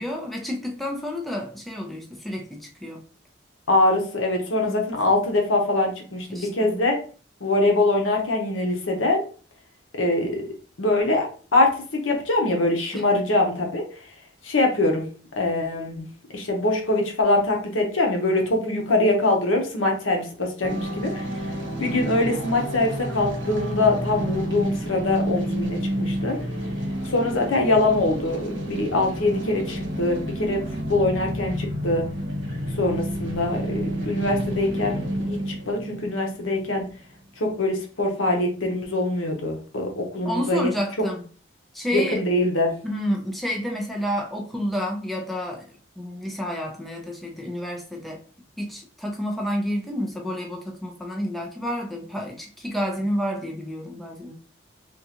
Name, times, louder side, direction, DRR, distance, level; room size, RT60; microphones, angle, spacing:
voice 1, 0.0-3.0 4.7-4.9 6.3-6.7 12.9-13.0 40.2-41.2 41.7-42.2 42.8-45.7 46.0-48.2 48.6-54.3, equal, ahead, 0 dB, 0.5 m, -29 dB
voice 2, 3.7-7.0 7.4-9.3 10.0-10.4 10.8-13.9 14.4-15.1 15.4-16.1 16.3-21.2 21.8-26.4 27.1-30.6 30.9-32.1 32.8-35.0 35.3-36.8 37.4-40.7 41.9-42.7, left 2 dB, 90° left, 2 dB, 0.8 m, -23 dB
sound 1, 20.6-36.9, equal, 70° right, 1.2 m, -30 dB
3.6 x 2.3 x 2.8 m, 0.41 s
head